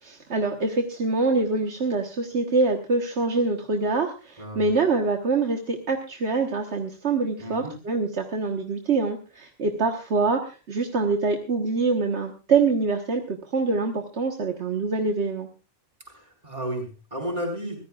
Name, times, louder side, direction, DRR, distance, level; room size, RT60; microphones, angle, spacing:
voice 1, 0.0-15.5, right 3 dB, 70° right, 4 dB, 1.6 m, -25 dB
voice 2, 4.4-4.7 7.4-7.7 16.1-17.8, equal, 35° right, 2 dB, 4.8 m, -33 dB
24.0 x 14.5 x 2.4 m, 0.30 s
omnidirectional pair, 1.2 m